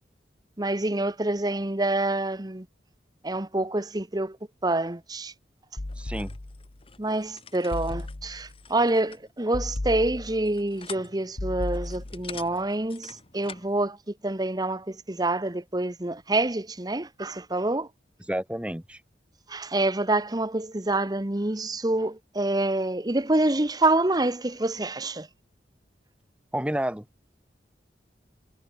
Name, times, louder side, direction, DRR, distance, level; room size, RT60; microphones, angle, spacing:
voice 1, 0.6-2.7 3.2-4.4 4.6-5.3 7.0-17.9 19.5-25.3, right 2 dB, 20° right, 1.1 m, -27 dB
sound 1, 5.8-6.8 7.7-8.6 9.5-10.6 11.4-12.4, left 1 dB, 65° left, 1.3 m, -35 dB
sound 2, 5.9-13.8, left 6 dB, 30° left, 3.5 m, -47 dB
voice 2, 6.0-6.3 18.3-19.0 26.5-27.0, right 1 dB, 5° right, 1.2 m, -30 dB
head